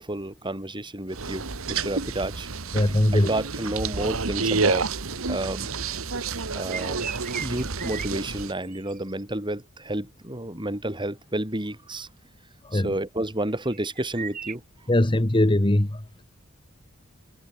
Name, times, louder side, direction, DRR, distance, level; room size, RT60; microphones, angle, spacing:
voice 1, 0.0-4.8 5.2-5.7 6.5-7.1 7.4-12.1 12.7-14.6, right 1 dB, 25° right, 7.9 m, -31 dB
sound 1, 1.1-8.5, right 4 dB, 90° right, 1.7 m, -29 dB
voice 2, 2.7-3.3 12.6-12.9 14.9-16.2, left 1 dB, 25° left, 1.2 m, -21 dB
sound 2, 6.5-9.2 13.4-14.6, right 7 dB, 40° right, 3.4 m, -37 dB
head